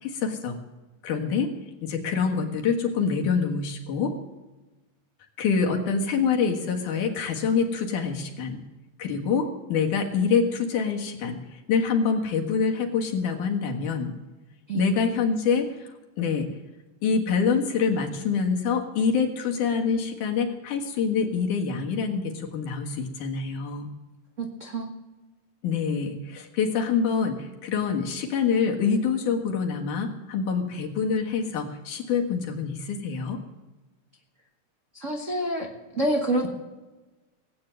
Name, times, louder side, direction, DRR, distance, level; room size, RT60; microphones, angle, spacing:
voice 1, 0.0-0.6 1.0-1.5 1.8-4.1 5.4-8.6 9.0-14.1 14.7-15.9 16.2-16.5 17.0-23.9 25.6-33.4, left 5 dB, 70° left, 2 dB, 3.1 m, -26 dB
voice 2, 24.4-24.9 34.9-35.7 35.9-36.5, right 1 dB, 85° right, 2 dB, 0.6 m, -27 dB
18.0 x 8.6 x 7.8 m, 1.2 s
omnidirectional pair, 3.8 m